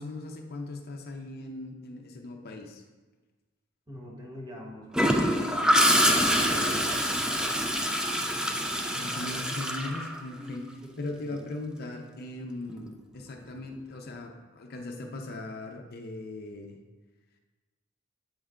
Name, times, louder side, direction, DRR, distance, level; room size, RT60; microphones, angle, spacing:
voice 1, 0.0-2.8 8.9-16.8, left 2 dB, 50° left, 3 dB, 0.6 m, -39 dB
voice 2, 3.9-7.0 10.9-11.5, equal, 20° right, -2 dB, 1.1 m, -44 dB
Gurgling / Toilet flush, 4.9-10.7 12.7-12.9, equal, 5° right, 0.3 m, -25 dB
7.9 x 3.3 x 3.6 m, 1.2 s
head